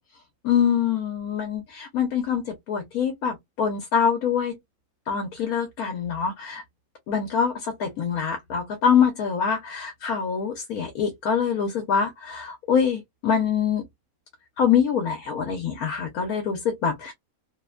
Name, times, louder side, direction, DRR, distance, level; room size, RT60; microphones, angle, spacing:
voice 1, 0.4-4.5 5.1-6.6 7.1-13.8 14.6-17.1, left 7 dB, 75° left, 1.2 m, -24 dB
2.9 x 2.1 x 2.2 m
omnidirectional pair, 1.6 m